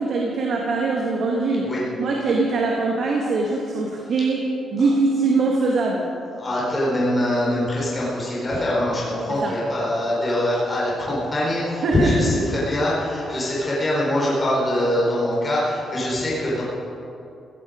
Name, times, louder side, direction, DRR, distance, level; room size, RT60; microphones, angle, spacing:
voice 1, 0.0-6.1 9.3-9.6 11.8-12.4, right 3 dB, 55° right, -1 dB, 2.0 m, -22 dB
voice 2, 6.4-16.6, left 1 dB, 20° left, -6 dB, 4.4 m, -23 dB
16.5 x 16.0 x 5.2 m, 2.7 s
cardioid pair, 165°, 0 cm